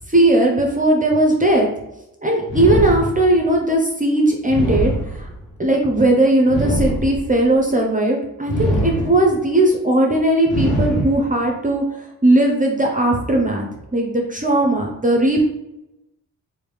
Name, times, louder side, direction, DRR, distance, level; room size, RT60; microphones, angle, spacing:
voice 1, 0.0-1.7 2.2-5.3 5.6-13.7 13.9-15.4, right 1 dB, 20° right, 1 dB, 0.7 m, -18 dB
sound 1, 2.5-3.5 4.5-5.5 6.5-7.5 8.5-9.5 10.5-11.5, equal, 70° left, 1.2 m, -23 dB
3.2 x 2.7 x 3.3 m, 0.91 s
supercardioid pair, 55°, 38 cm